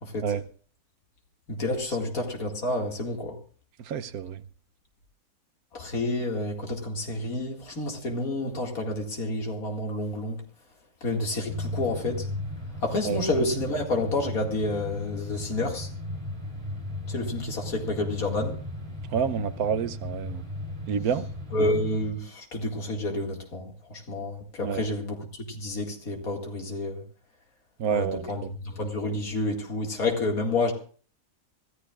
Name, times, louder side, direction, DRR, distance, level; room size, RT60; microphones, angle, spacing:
voice 1, 0.0-0.3 1.5-3.3 5.7-10.4 11.0-12.3 12.8-15.9 17.1-18.6 21.5-27.0 27.9-30.7, left 2 dB, 75° left, 2.6 m, -29 dB
voice 2, 3.9-4.4 13.0-13.2 19.1-20.5 20.9-21.3 24.6-24.8 27.8-28.5, right 7 dB, 80° right, 1.2 m, -28 dB
sound 1, 11.5-22.1, left 1 dB, 20° right, 3.1 m, -36 dB
25.0 x 13.5 x 2.4 m
omnidirectional pair, 1.5 m